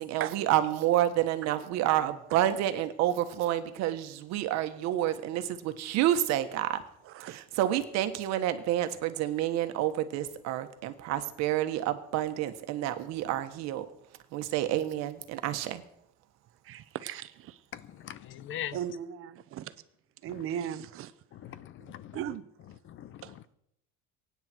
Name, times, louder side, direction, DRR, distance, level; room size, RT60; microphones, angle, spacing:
voice 1, 0.0-6.8 7.2-13.9 14.3-15.8, right 12 dB, 65° right, 1.5 m, -29 dB
voice 2, 7.1-7.4 16.6-17.6 18.7-19.7 20.2-21.1 21.8-22.5 23.2-23.3, right 10 dB, 50° right, 0.9 m, -37 dB
voice 3, 17.7-18.8 21.3-22.2 22.9-23.6, left 11 dB, 45° left, 0.8 m, -41 dB
23.5 x 9.8 x 4.6 m
cardioid pair, 150°, 29 cm